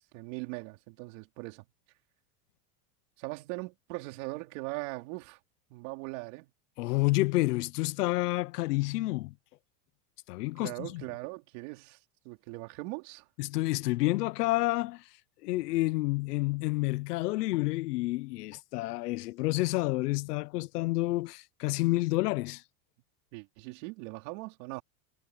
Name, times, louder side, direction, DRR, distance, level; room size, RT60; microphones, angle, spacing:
voice 1, 0.1-1.7 3.2-5.4 5.7-6.5 10.6-12.0 12.2-13.3 23.3-24.8, right 25 dB, 50° right, 4.2 m, -40 dB
voice 2, 6.8-9.3 10.3-11.0 13.4-15.0 15.4-22.6, left 20 dB, 85° left, 0.8 m, -29 dB
supercardioid pair, 160°, 46 cm